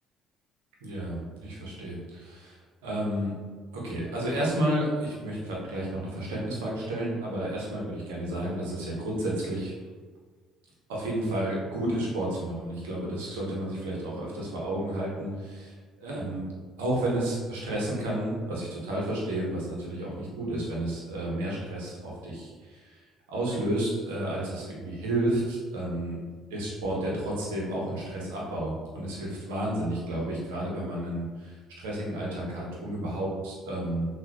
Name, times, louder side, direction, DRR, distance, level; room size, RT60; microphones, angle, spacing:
voice 1, 0.8-3.3 3.7-9.7 10.9-16.5 16.8-26.2 26.5-34.1, right 1 dB, 70° right, -4 dB, 1.1 m, -31 dB
6.0 x 2.6 x 3.0 m, 1.5 s
figure-of-eight pair, 50°, 0 cm